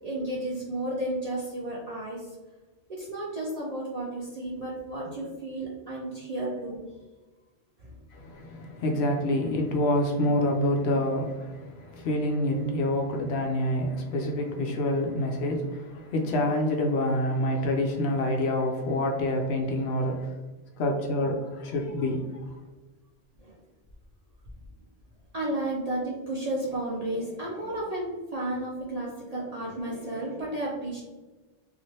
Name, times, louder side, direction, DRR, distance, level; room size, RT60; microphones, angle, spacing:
voice 1, 0.0-2.3 2.9-6.9 7.8-8.0 23.4-23.6 25.3-31.0, right 1 dB, 50° right, -5 dB, 0.5 m, -32 dB
voice 2, 8.1-20.3 20.8-22.2, left 1 dB, 70° left, 1 dB, 0.8 m, -27 dB
3.0 x 2.5 x 2.7 m, 1.2 s
omnidirectional pair, 1.2 m